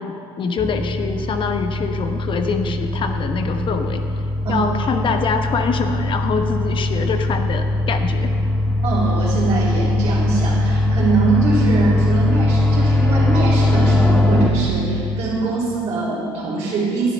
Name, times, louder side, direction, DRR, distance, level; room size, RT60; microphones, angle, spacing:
voice 1, 0.0-4.0 4.5-8.4, left 5 dB, 45° left, 6 dB, 1.0 m, -24 dB
sound 1, 0.6-14.5, left 2 dB, 10° left, 1.6 m, -20 dB
voice 2, 8.8-17.1, right 4 dB, 60° right, -10 dB, 3.4 m, -22 dB
11.0 x 9.7 x 5.7 m, 2.5 s
supercardioid pair, 85°, 12 cm